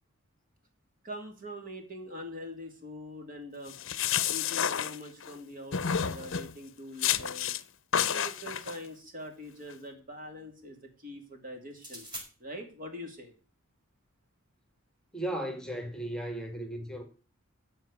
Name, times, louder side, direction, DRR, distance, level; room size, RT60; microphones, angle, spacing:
voice 1, 1.0-3.7 4.3-7.5 8.1-12.1 12.4-13.3, equal, 40° right, 2.7 m, -43 dB
sound 1, 3.7-5.4 5.7-6.5 7.0-7.6 7.9-8.7, left 9 dB, 65° left, 0.7 m, -30 dB
sound 2, 7.8-9.0 11.7-12.3, right 1 dB, 20° right, 4.5 m, -46 dB
voice 2, 15.1-17.0, right 1 dB, 5° left, 1.8 m, -35 dB
13.5 x 4.7 x 8.2 m
head